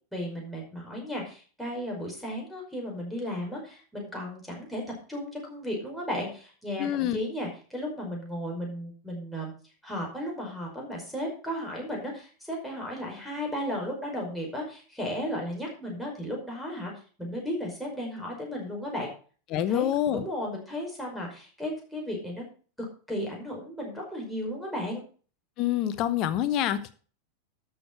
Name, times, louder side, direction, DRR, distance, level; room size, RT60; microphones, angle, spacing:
voice 1, 0.1-4.8 5.1-9.5 9.8-16.9 17.2-19.1 19.6-22.4 23.1-25.0, equal, ahead, -1 dB, 5.4 m, -34 dB
voice 2, 6.8-7.2 19.5-20.3 25.6-26.9, left 11 dB, 40° left, 13 dB, 1.1 m, -26 dB
13.0 x 6.7 x 4.6 m, 0.39 s
figure-of-eight pair, 90°, 0 cm